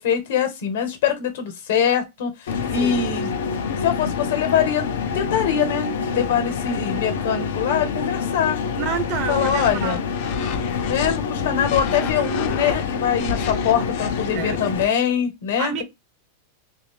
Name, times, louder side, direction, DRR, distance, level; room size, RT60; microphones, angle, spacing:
voice 1, 0.0-3.3 3.8-8.6 9.3-10.0 10.9-15.8, left 8 dB, 60° left, 1.2 m, -23 dB
sound 1, 2.5-14.9, left 5 dB, 80° left, 0.7 m, -27 dB
voice 2, 2.8-3.1 8.8-10.0 14.3-14.6 15.6-15.8, right 7 dB, 30° right, 0.4 m, -29 dB
sound 2, 9.2-11.2 11.6-14.3, left 7 dB, 35° left, 0.5 m, -32 dB
3.3 x 2.6 x 3.3 m
supercardioid pair, 180°, 0 cm